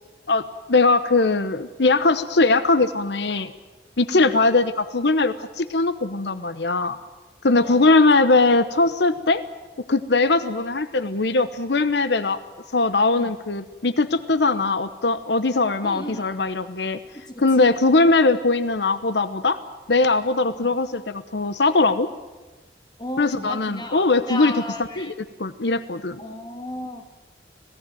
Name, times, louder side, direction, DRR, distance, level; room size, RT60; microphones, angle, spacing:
voice 1, 0.7-3.5 4.0-7.0 7.4-9.4 9.9-12.4 12.7-17.0 17.4-19.6 19.9-22.1 23.2-24.5 25.0-25.1 25.4-26.2, left 3 dB, 80° left, 13 dB, 1.0 m, -20 dB
voice 2, 4.1-4.5 7.5-7.9 13.1-13.3 15.8-16.3 17.1-17.7 23.0-25.1 26.2-27.0, left 1 dB, 25° left, 5 dB, 2.4 m, -35 dB
26.0 x 18.0 x 9.2 m, 1.2 s
head